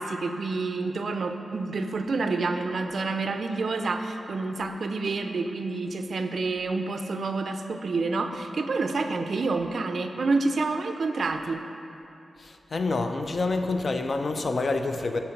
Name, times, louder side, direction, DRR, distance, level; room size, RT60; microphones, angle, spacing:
voice 1, 0.0-11.6, right 3 dB, 60° right, 6 dB, 0.3 m, -28 dB
voice 2, 12.4-15.2, left 3 dB, 45° left, 6 dB, 0.3 m, -27 dB
5.0 x 4.3 x 5.7 m, 2.9 s
wide cardioid pair, 120°, 0 cm